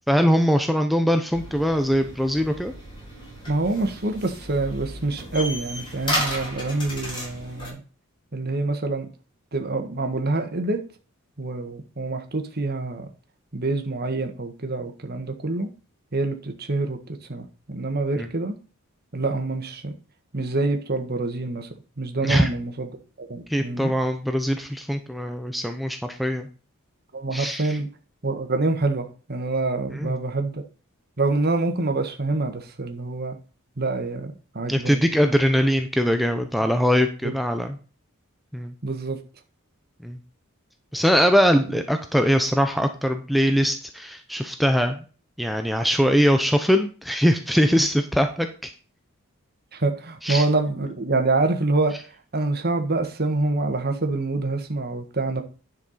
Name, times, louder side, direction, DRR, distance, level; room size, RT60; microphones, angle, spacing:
voice 1, 0.1-2.7 18.2-18.3 22.2-22.5 23.5-26.5 27.3-27.8 30.0-30.1 34.7-37.8 38.5-38.7 40.0-40.2 40.9-45.0 45.4-48.7 50.2-50.4, equal, ahead, 5 dB, 0.7 m, -22 dB
sound 1, 1.3-7.7, equal, 20° left, 4.0 m, -33 dB
voice 2, 3.5-7.8 8.3-9.1 9.5-10.8 11.4-13.1 13.5-15.7 16.1-18.6 19.1-19.9 20.3-21.7 22.0-22.9 23.2-23.9 27.1-27.9 28.2-30.6 31.2-33.4 33.8-35.0 37.2-37.3 38.8-39.2 41.7-41.8 47.8-47.9 49.7-52.0 52.3-55.4, right 2 dB, 45° right, 5 dB, 1.5 m, -26 dB
10.5 x 5.9 x 4.2 m, 0.37 s
head